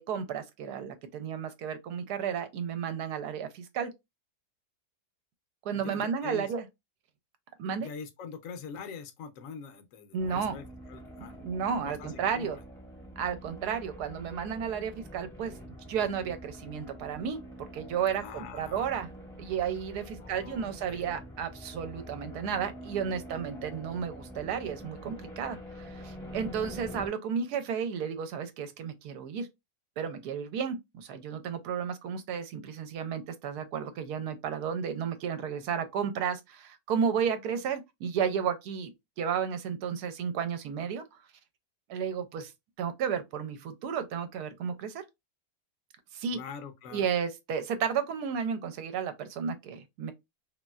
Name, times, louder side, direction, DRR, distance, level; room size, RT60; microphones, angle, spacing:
voice 1, 0.0-3.9 5.6-6.6 7.6-7.9 10.1-10.6 11.2-12.6 13.2-15.5 15.9-19.1 19.4-29.5 30.0-38.9 39.2-41.0 41.9-42.5 42.8-45.0 46.1-46.4 46.9-50.1, right 7 dB, 75° right, 1.1 m, -33 dB
voice 2, 5.7-6.5 7.8-11.4 11.8-12.5 18.1-19.0 20.2-21.0 46.3-47.1, left 6 dB, 65° left, 0.9 m, -44 dB
sound 1, 10.2-27.1, equal, 5° left, 0.5 m, -46 dB
3.1 x 2.8 x 2.3 m
omnidirectional pair, 1.8 m